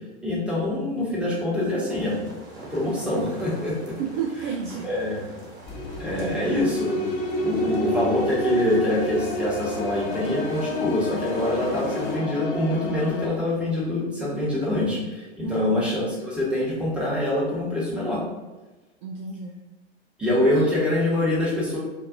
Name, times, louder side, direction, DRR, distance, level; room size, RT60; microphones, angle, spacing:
voice 1, 0.2-2.1 2.7-3.9 4.8-5.3 6.0-7.0 7.4-18.2 20.2-21.8, left 1 dB, 5° right, -8 dB, 1.4 m, -25 dB
sound 1, 1.8-12.2, right 2 dB, 65° right, 1.2 m, -43 dB
voice 2, 4.0-4.9 15.4-15.8 19.0-19.6 20.6-20.8, right 6 dB, 45° right, 0 dB, 0.4 m, -31 dB
sound 2, 5.7-13.3, left 1 dB, 45° left, 0.8 m, -30 dB
4.4 x 2.6 x 2.6 m, 1.2 s
hypercardioid pair, 105°, 33 cm